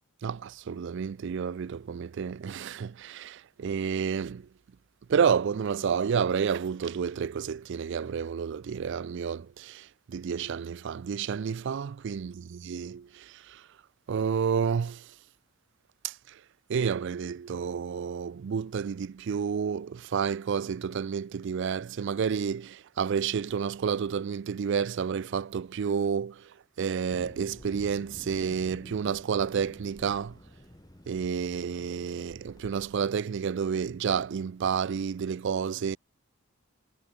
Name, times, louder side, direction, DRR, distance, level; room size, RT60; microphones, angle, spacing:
voice 1, 0.2-4.4 5.1-9.8 10.1-12.3 12.6-13.0 14.1-15.0 16.7-26.3 26.8-30.3 31.1-36.0, right 6 dB, 55° right, 0.4 m, -30 dB
Thunder, 27.1-33.0, equal, 20° left, 2.6 m, -50 dB
head